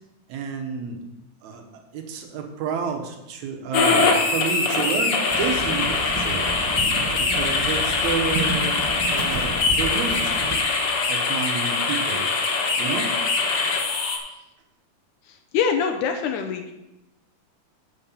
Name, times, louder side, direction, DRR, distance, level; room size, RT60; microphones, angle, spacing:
voice 1, 0.3-1.0 1.4-6.5 7.2-8.8 9.1-10.4 11.1-12.3 12.8-13.1, right 5 dB, 70° right, 4 dB, 2.3 m, -30 dB
sound 1, 3.7-14.2, left 4 dB, 55° left, 1.9 m, -23 dB
sound 2, 5.3-10.6, right 3 dB, 55° right, 1.2 m, -32 dB
voice 2, 15.5-16.7, left 6 dB, 80° left, 5 dB, 2.1 m, -24 dB
7.6 x 5.3 x 7.2 m, 0.93 s
omnidirectional pair, 3.5 m